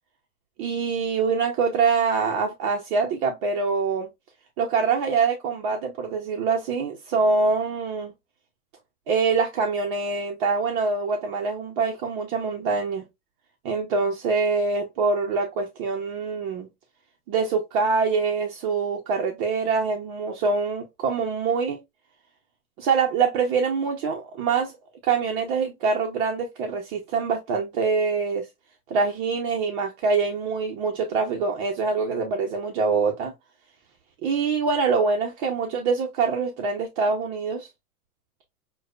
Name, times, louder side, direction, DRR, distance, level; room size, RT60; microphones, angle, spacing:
voice 1, 0.6-4.1 4.6-8.1 9.1-13.0 13.6-16.7 17.3-21.8 22.8-24.7 25.0-28.5 28.9-33.3 34.2-37.7, right 4 dB, 35° right, 0.8 m, -24 dB
6.2 x 2.3 x 2.3 m
hypercardioid pair, 115°, 46 cm